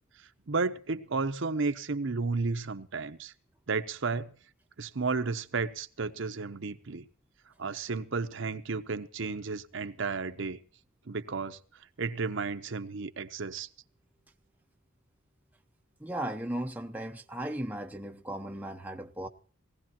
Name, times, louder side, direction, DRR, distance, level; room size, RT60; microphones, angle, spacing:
voice 1, 0.5-3.3 3.7-4.3 4.8-7.1 7.6-10.6 11.1-11.6 12.0-13.7, right 4 dB, 65° right, 0.8 m, -32 dB
voice 2, 16.0-19.3, right 1 dB, 10° right, 0.7 m, -36 dB
19.0 x 16.0 x 2.9 m
head